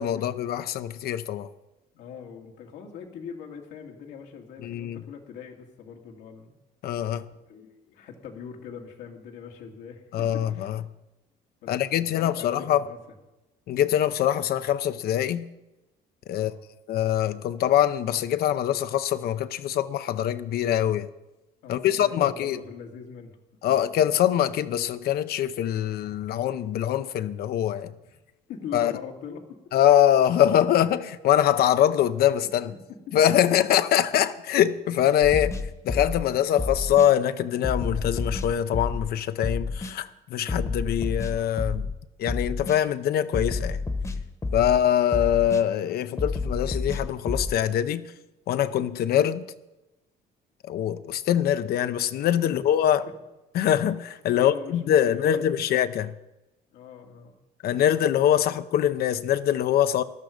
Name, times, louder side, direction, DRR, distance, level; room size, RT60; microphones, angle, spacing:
voice 1, 0.0-1.5 4.6-5.0 6.8-7.2 10.1-10.8 11.7-12.8 13.7-15.5 16.3-16.5 16.9-21.1 21.7-22.6 23.6-27.9 28.7-28.9 29.7-32.7 33.1-35.6 35.8-41.8 42.2-43.8 44.5-48.1 48.5-49.5 50.6-53.1 53.5-56.1 57.6-60.0, left 10 dB, 65° left, 0.7 m, -23 dB
voice 2, 1.9-6.6 7.5-10.7 11.6-13.0 16.3-16.6 21.6-23.3 28.0-28.2 28.5-29.5 32.7-32.8 52.4-52.5 54.3-55.7 56.7-57.3 57.9-58.2, left 7 dB, 85° left, 2.1 m, -42 dB
sound 1, 35.2-36.3 36.6-37.1 37.6-39.1 39.4-39.9 40.5-41.9 42.3-42.8 43.3-44.8 45.1-45.6 46.2-47.6, left 3 dB, 20° left, 1.1 m, -30 dB
14.0 x 11.5 x 5.1 m
cardioid pair, 110°, 17 cm